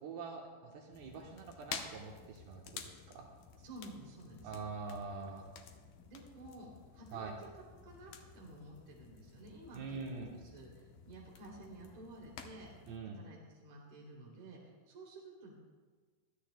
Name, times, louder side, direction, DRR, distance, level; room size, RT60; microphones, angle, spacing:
voice 1, 0.0-2.8 3.1-3.3 4.4-5.4 7.1-7.3 9.7-10.3 12.9-13.2, right 4 dB, 75° right, 0 dB, 2.9 m, -44 dB
sound 1, 0.9-13.0, left 7 dB, 75° left, 2.1 m, -52 dB
voice 2, 3.6-4.6 6.0-7.5 7.8-12.7 13.1-15.5, right 2 dB, 45° right, -3 dB, 3.9 m, -52 dB
22.0 x 13.0 x 2.2 m, 1.4 s
omnidirectional pair, 4.6 m